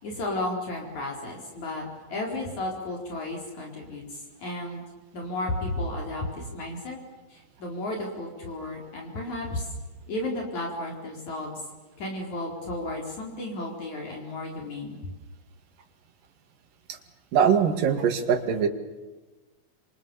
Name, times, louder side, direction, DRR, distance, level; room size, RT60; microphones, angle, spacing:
voice 1, 0.0-4.8 5.1-7.0 7.3-9.7 10.1-11.5 12.0-15.1, left 1 dB, 55° left, 0 dB, 5.7 m, -33 dB
voice 2, 17.3-18.7, right 7 dB, 80° right, 5 dB, 3.8 m, -22 dB
28.5 x 27.5 x 7.2 m, 1.2 s
omnidirectional pair, 3.9 m